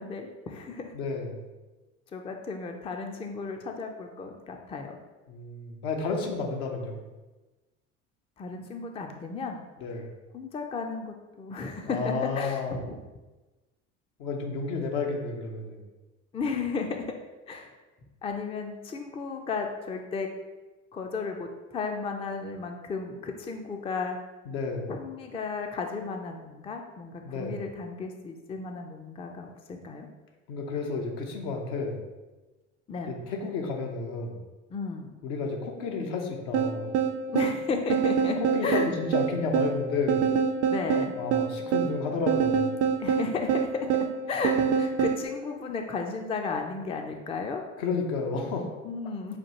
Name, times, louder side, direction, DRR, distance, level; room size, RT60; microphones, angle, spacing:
voice 1, 0.0-0.9 2.1-5.0 6.3-6.5 8.4-9.6 10.3-13.0 16.3-17.0 17.5-17.7 18.2-20.3 20.9-24.2 24.9-30.1 32.9-33.2 34.7-35.1 37.3-38.4 38.6-38.9 40.7-41.1 43.0-43.9 44.3-47.6 48.8-49.4, left 4 dB, 15° left, 4 dB, 0.4 m, -34 dB
voice 2, 0.9-1.4 5.3-7.0 9.8-10.1 11.9-12.8 14.2-15.8 24.5-24.9 27.2-27.6 30.5-32.0 33.1-34.4 35.2-36.9 38.4-40.2 41.2-42.7 47.8-48.7, left 4 dB, 70° left, 1 dB, 0.8 m, -31 dB
sound 1, 36.5-45.2, right 7 dB, 45° right, 0.4 m, -26 dB
5.8 x 2.4 x 2.9 m, 1.2 s
hypercardioid pair, 65°, 36 cm